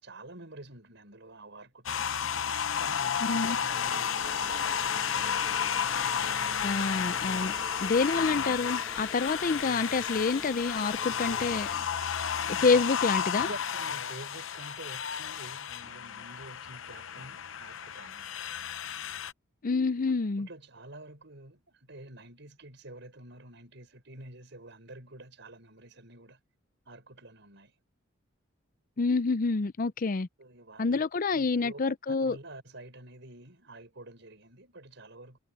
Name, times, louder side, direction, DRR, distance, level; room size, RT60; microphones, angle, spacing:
voice 1, 0.0-2.1 2.8-5.2 13.2-18.4 20.4-26.4 26.8-27.7 30.4-31.0 31.3-31.8 32.1-35.4, right 2 dB, 65° right, 6.6 m, -48 dB
sound 1, 1.9-19.3, left 8 dB, 75° left, 0.7 m, -32 dB
voice 2, 3.2-3.6 6.6-7.5 7.8-11.8 12.5-13.5 19.6-20.5 29.0-30.3 30.8-32.4, left 4 dB, 45° left, 0.5 m, -27 dB
sound 2, 3.7-11.7, left 1 dB, 5° left, 1.1 m, -46 dB
head